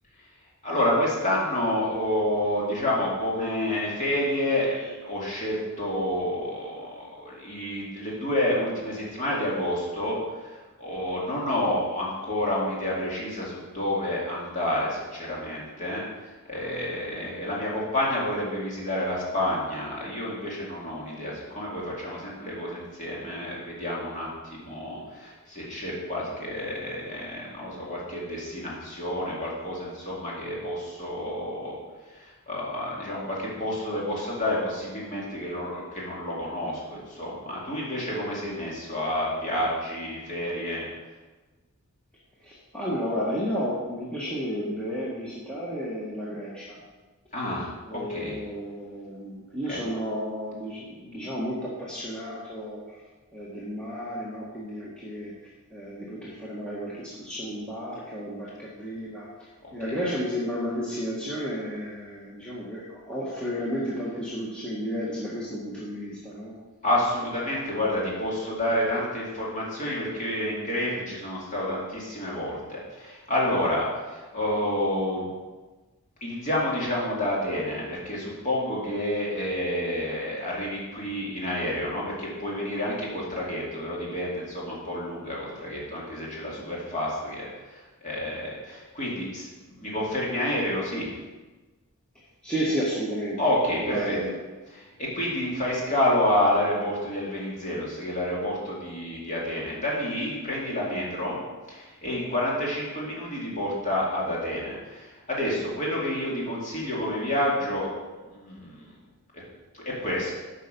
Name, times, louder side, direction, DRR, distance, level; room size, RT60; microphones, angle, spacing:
voice 1, 0.6-31.8 32.0-40.9 47.3-48.4 49.7-49.8 59.6-60.0 66.8-75.3 76.2-91.1 93.4-94.2 94.7-101.4 101.7-107.9 108.3-108.9 109.7-110.3, left 1 dB, 35° left, -5 dB, 2.4 m, -29 dB
voice 2, 42.4-46.8 47.9-52.8 53.3-55.3 55.7-59.3 59.7-66.5 92.4-93.5 93.8-94.4, equal, 5° left, -8 dB, 1.2 m, -32 dB
8.7 x 5.5 x 5.2 m, 1.3 s
head